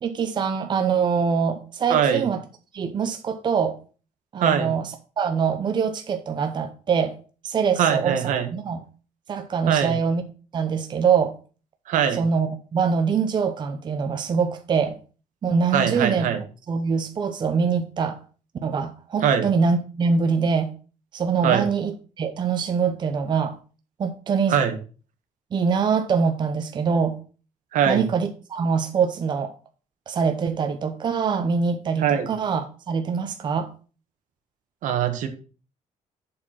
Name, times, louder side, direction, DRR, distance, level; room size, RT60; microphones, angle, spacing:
voice 1, 0.0-2.4 2.7-3.8 4.3-7.2 7.4-8.2 8.5-8.8 9.3-10.2 10.5-11.3 12.1-15.0 15.4-16.4 16.7-18.2 18.6-20.7 21.1-23.6 24.0-24.6 25.5-27.2 27.9-29.6 30.1-33.7, right 6 dB, 35° right, 0.7 m, -24 dB
voice 2, 1.9-2.2 4.4-4.7 7.8-8.5 9.7-10.0 11.9-12.2 15.7-16.4 19.2-19.5 21.4-21.7 24.5-24.7 27.7-28.1 32.0-32.3 34.8-35.3, right 8 dB, 75° right, 1.3 m, -22 dB
7.6 x 4.3 x 5.7 m
cardioid pair, 145°, 13 cm